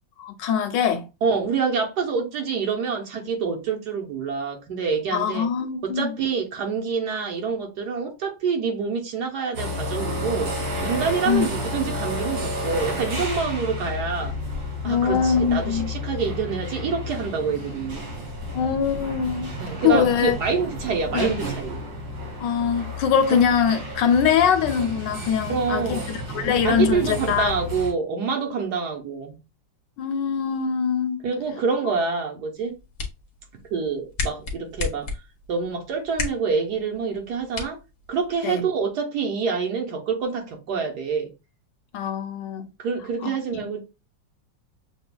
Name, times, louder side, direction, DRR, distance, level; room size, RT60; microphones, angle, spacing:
voice 1, 0.2-1.1 5.1-6.2 11.3-11.5 14.8-15.9 18.5-19.5 19.8-20.3 21.1-21.3 22.4-27.5 30.0-31.2 38.4-38.7 41.9-42.7 43.2-43.4, left 7 dB, 75° left, 1.4 m, -23 dB
voice 2, 1.2-5.5 5.8-10.5 10.8-14.3 14.8-18.0 19.6-21.8 23.3-23.4 25.5-26.2 26.6-29.4 31.2-32.7 33.7-35.1 35.5-37.8 38.1-41.3 42.8-43.9, right 5 dB, 65° right, 1.4 m, -26 dB
sound 1, 9.5-27.9, left 1 dB, 80° right, 2.3 m, -31 dB
sound 2, 32.6-38.6, left 4 dB, 50° left, 1.2 m, -35 dB
6.7 x 2.5 x 2.2 m
omnidirectional pair, 2.0 m